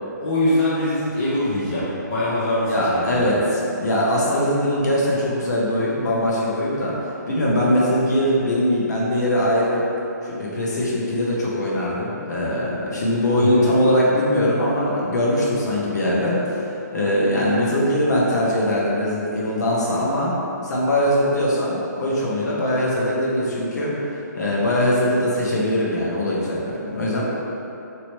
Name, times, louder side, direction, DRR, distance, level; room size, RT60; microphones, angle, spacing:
voice 1, 0.2-3.4 13.4-13.7, left 1 dB, 20° left, -9 dB, 0.5 m, -23 dB
voice 2, 2.6-6.9 7.3-9.8 10.2-16.6 16.9-20.3 20.6-23.9 24.3-27.2, left 1 dB, 60° left, -5 dB, 1.1 m, -21 dB
3.2 x 3.0 x 4.2 m, 2.9 s
hypercardioid pair, 170°, 10 cm